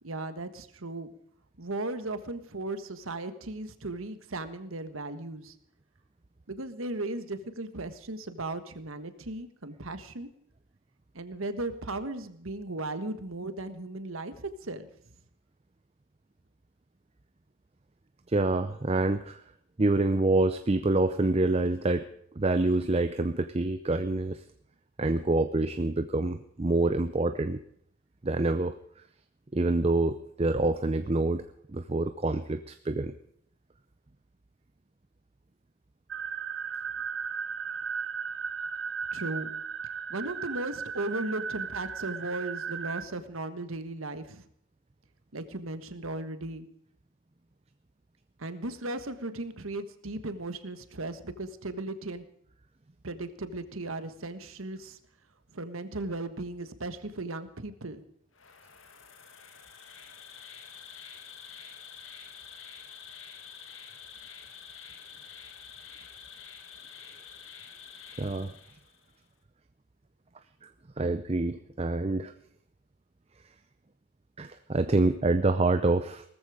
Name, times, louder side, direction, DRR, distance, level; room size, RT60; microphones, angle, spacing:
voice 1, 0.0-1.1 1.6-5.5 6.5-10.3 11.1-14.9 39.1-39.5 39.8-44.5 45.3-46.7 48.4-52.2 53.0-55.0 55.5-58.0, right 2 dB, 80° right, 10 dB, 1.5 m, -36 dB
voice 2, 18.3-19.4 19.8-22.1 22.4-24.4 25.0-27.6 28.2-28.8 29.5-31.5 31.7-33.1 68.2-68.5 70.6-70.7 71.0-72.3 74.4-76.2, right 2 dB, 30° right, 10 dB, 0.6 m, -26 dB
sound 1, 36.1-43.0, right 6 dB, 60° right, 1.0 m, -36 dB
Insect, 58.3-69.1, left 7 dB, 70° left, 2.1 m, -48 dB
18.5 x 14.0 x 5.0 m, 0.67 s
head